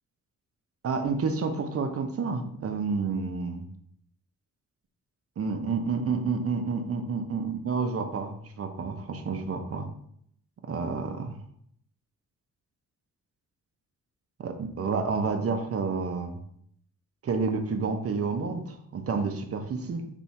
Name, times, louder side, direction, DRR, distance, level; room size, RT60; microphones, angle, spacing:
voice 1, 0.8-3.7 5.4-9.9 10.6-11.3 14.4-16.4 17.2-20.1, right 4 dB, 45° right, 6 dB, 0.7 m, -29 dB
4.1 x 2.7 x 4.5 m, 0.69 s
cardioid pair, 80°, 32 cm